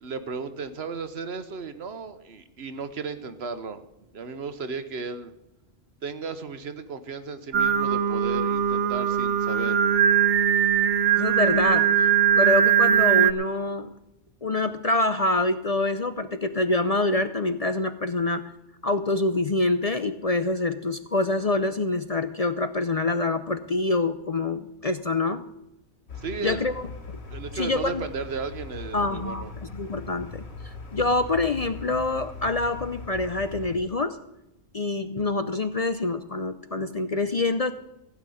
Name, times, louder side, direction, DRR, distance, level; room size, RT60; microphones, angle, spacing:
voice 1, 0.0-3.8 4.1-5.3 6.0-9.8 26.2-26.7 27.3-29.5, right 5 dB, 65° right, 11 dB, 1.2 m, -35 dB
Singing, 7.5-13.3, right 8 dB, 90° right, 1.0 m, -21 dB
voice 2, 11.2-12.1 12.3-13.9 14.4-18.5 18.8-25.4 26.4-26.7 27.1-27.2 27.5-28.1 28.9-34.2 34.7-37.7, left 2 dB, 40° left, 10 dB, 0.6 m, -26 dB
sound 1, 26.1-33.8, left 4 dB, 70° left, 2.0 m, -40 dB
15.5 x 6.1 x 9.9 m, 0.87 s
omnidirectional pair, 1.2 m